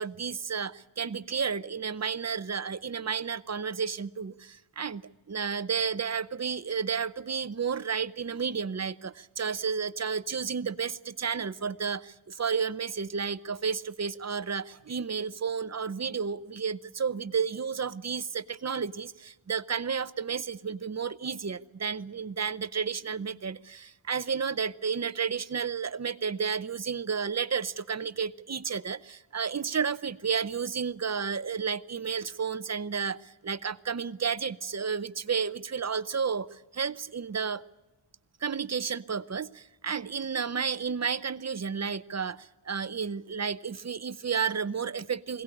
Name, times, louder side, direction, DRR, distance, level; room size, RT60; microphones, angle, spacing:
voice 1, 0.0-5.0 5.3-37.6 38.4-45.4, right 6 dB, 35° right, 15 dB, 0.7 m, -32 dB
21.5 x 18.0 x 9.9 m, 1.1 s
wide cardioid pair, 115°, 48 cm